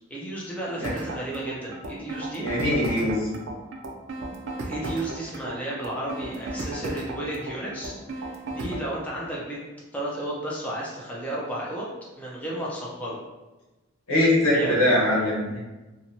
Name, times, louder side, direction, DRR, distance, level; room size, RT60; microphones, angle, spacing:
voice 1, 0.1-2.4 4.6-9.6 9.9-11.9 12.2-13.2 14.5-14.8, right 1 dB, 5° left, -6 dB, 0.4 m, -33 dB
sound 1, 0.8-8.9, right 2 dB, 60° right, 0.4 m, -34 dB
voice 2, 2.4-3.3 14.1-15.6, left 1 dB, 90° left, -5 dB, 0.9 m, -22 dB
2.8 x 2.1 x 2.6 m, 1.1 s
head